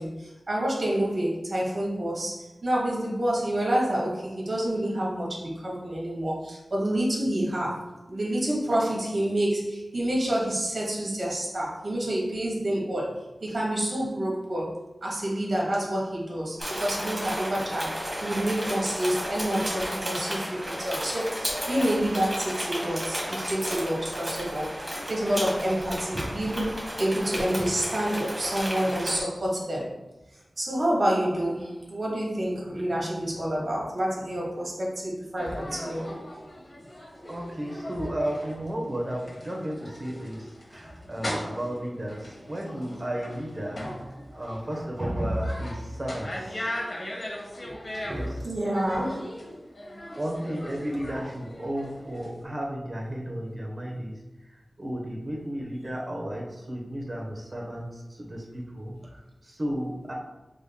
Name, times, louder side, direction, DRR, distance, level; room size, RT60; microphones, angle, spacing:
voice 1, 0.0-30.0 30.6-36.1 48.1-49.4, right 1 dB, 60° right, -4 dB, 1.5 m, -28 dB
sound 1, 16.6-29.2, equal, 10° right, 1.4 m, -33 dB
sound 2, 35.4-52.4, left 1 dB, 50° left, 1.0 m, -39 dB
voice 2, 37.3-46.8 48.1-48.5 50.1-60.1, equal, 40° right, -2 dB, 1.1 m, -33 dB
5.2 x 3.5 x 2.3 m, 1.0 s
wide cardioid pair, 65°, 0 cm